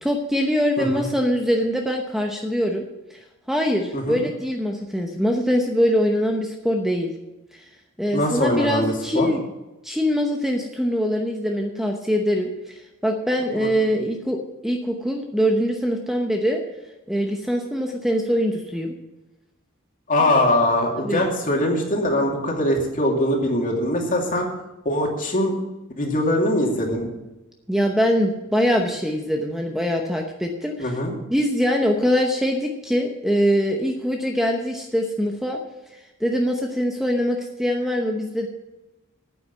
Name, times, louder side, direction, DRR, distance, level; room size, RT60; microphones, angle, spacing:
voice 1, 0.0-2.8 3.5-7.1 8.0-9.4 9.8-16.6 17.1-18.9 21.0-21.3 27.7-30.9 31.3-35.6 36.2-38.5, equal, ahead, 2 dB, 0.9 m, -23 dB
voice 2, 8.1-9.3 20.1-24.5 24.8-25.5 26.0-27.1 30.8-31.1, left 1 dB, 40° left, 0 dB, 2.6 m, -22 dB
9.6 x 8.5 x 8.1 m, 1.0 s
head